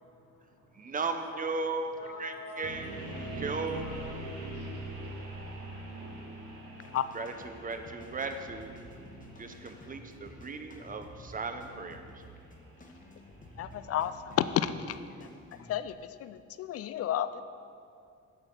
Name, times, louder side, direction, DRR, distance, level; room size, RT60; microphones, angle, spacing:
voice 1, 0.2-0.9 1.2-5.6, left 2 dB, 80° left, -4 dB, 1.6 m, -49 dB
voice 2, 0.7-2.9 3.4-3.9 7.1-8.8 9.4-12.2, right 4 dB, 30° right, 7 dB, 0.7 m, -36 dB
sound 1, 2.6-14.6, right 1 dB, 70° right, 1.5 m, -44 dB
sound 2, 6.8-15.9, equal, 25° left, 1.1 m, -52 dB
voice 3, 13.6-15.0 15.7-15.9 16.2-17.4, left 11 dB, 55° left, 13 dB, 0.4 m, -31 dB
8.9 x 4.1 x 6.6 m, 2.4 s
cardioid pair, 90°, 30 cm